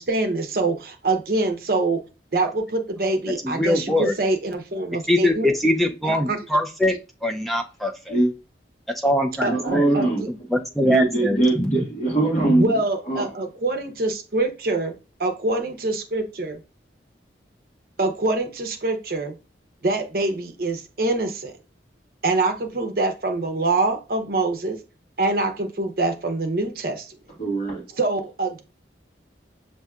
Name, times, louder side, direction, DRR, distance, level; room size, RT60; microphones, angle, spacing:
voice 1, 0.0-2.0 2.3-5.6 6.1-6.4 9.4-10.0 12.4-14.9 15.2-16.6 18.0-19.3 19.8-21.5 22.2-24.8 25.2-27.2 28.0-28.6, right 2 dB, 55° right, 0.7 m, -24 dB
voice 2, 3.4-4.1 5.1-6.9 7.2-8.1 9.0-9.5 9.7-9.8 10.5-11.8, left 1 dB, ahead, 0.3 m, -22 dB
voice 3, 9.4-10.3 10.8-13.3 27.4-28.0, right 2 dB, 40° left, 1.4 m, -22 dB
6.1 x 2.6 x 2.3 m
head